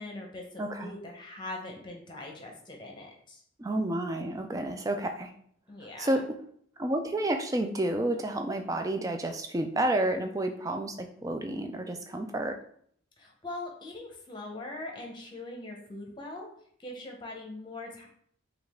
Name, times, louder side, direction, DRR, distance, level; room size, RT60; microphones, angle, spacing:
voice 1, 0.0-3.4 5.7-6.2 13.2-16.5 16.8-18.1, left 2 dB, 20° left, 0 dB, 0.8 m, -41 dB
voice 2, 0.6-0.9 3.6-5.3 5.8-6.2 6.8-12.6, right 1 dB, 15° right, 5 dB, 0.3 m, -30 dB
4.9 x 2.4 x 3.6 m, 0.64 s
head